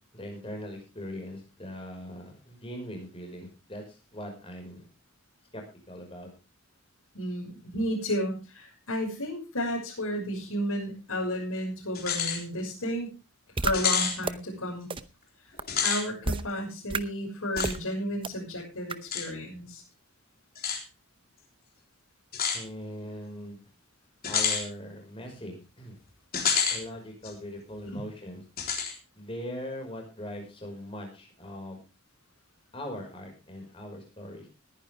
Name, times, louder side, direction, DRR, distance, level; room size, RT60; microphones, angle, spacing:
voice 1, 0.1-4.9 5.5-6.3 22.5-23.6 24.3-26.0 26.7-28.4 29.2-31.8 32.7-34.5, equal, 25° left, 2 dB, 5.6 m, -40 dB
voice 2, 7.1-13.1 13.6-14.9 15.8-19.8 27.9-28.0, equal, 80° left, -4 dB, 6.2 m, -32 dB
sound 1, 11.9-12.4 12.8-12.9 13.7-14.2 15.6-16.0 17.5-17.7 19.1-19.3 20.5-20.8 22.3-22.6 24.2-24.6 26.3-26.8 27.2-27.3 28.6-28.9, left 6 dB, 45° left, 3.8 m, -28 dB
sound 2, 13.6-13.7 14.2-14.3 14.9-15.0 15.6-15.7 16.2-16.4 16.9-17.0 17.6-17.8 18.2-18.3 18.9-19.0, right 3 dB, 25° right, 0.7 m, -29 dB
20.0 x 10.0 x 3.6 m, 0.30 s
head